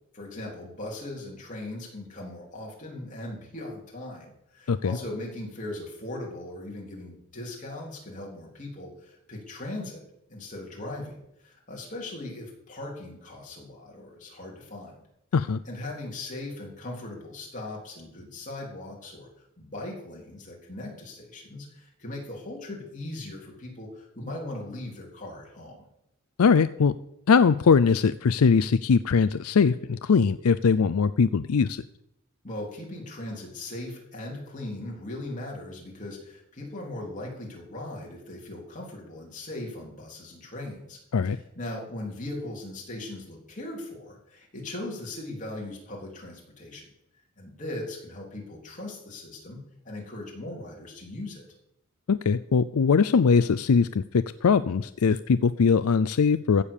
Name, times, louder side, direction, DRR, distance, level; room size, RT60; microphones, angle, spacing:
voice 1, 0.1-10.0 10.3-14.9 15.7-19.3 19.6-25.9 32.4-41.0 41.2-46.9 47.4-49.6 49.8-51.5, left 1 dB, 35° left, -2 dB, 3.7 m, -39 dB
voice 2, 26.4-26.9 27.3-31.8 41.1-41.4 52.1-56.6, left 5 dB, 80° left, 14 dB, 0.5 m, -21 dB
15.5 x 6.7 x 7.2 m, 0.81 s
head